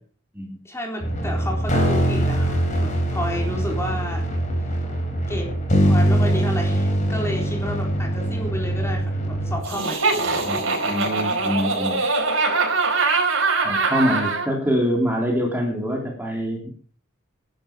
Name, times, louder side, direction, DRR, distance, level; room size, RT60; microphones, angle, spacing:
voice 1, 0.6-4.3 5.3-5.5 5.8-10.1, left 1 dB, 15° left, 0 dB, 4.0 m, -31 dB
sound 1, 1.0-9.6, right 1 dB, 40° left, 3.7 m, -22 dB
Laughter, 9.6-14.5, right 3 dB, 85° right, 5.0 m, -22 dB
voice 2, 10.4-12.0 13.6-16.7, equal, 10° right, 0 dB, 3.4 m, -25 dB
13.5 x 11.5 x 5.2 m, 0.43 s
head